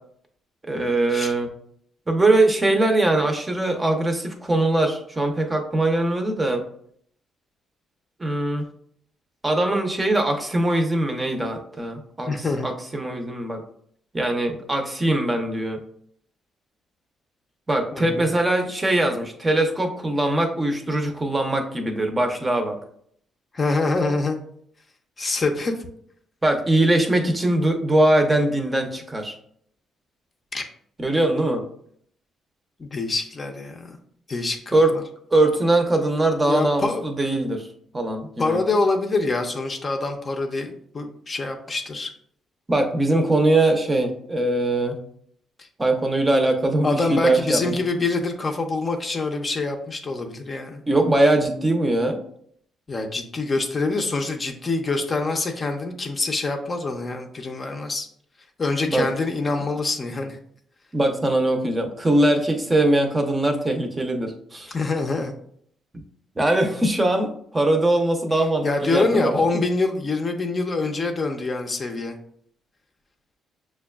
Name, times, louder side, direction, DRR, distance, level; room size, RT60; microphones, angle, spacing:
voice 1, 0.7-1.5 2.1-6.6 8.2-8.7 9.4-12.3 12.6-13.6 14.1-15.8 17.7-22.8 26.4-29.4 31.0-31.6 34.7-34.9 35.3-37.7 37.9-38.6 42.7-45.0 45.8-47.8 50.9-52.2 58.9-59.1 60.9-64.7 66.4-69.4, right 1 dB, 20° right, 4 dB, 0.6 m, -21 dB
voice 2, 12.3-12.7 17.9-18.1 23.5-24.4 25.2-25.7 30.5-30.6 32.8-34.0 34.3-35.0 36.5-37.0 38.4-42.1 45.6-45.7 46.8-50.8 52.9-58.1 58.6-60.4 64.7-65.3 68.6-72.2, left 3 dB, 35° left, 3 dB, 0.5 m, -25 dB
5.9 x 2.2 x 2.3 m, 0.65 s
cardioid pair, 90°, 0 cm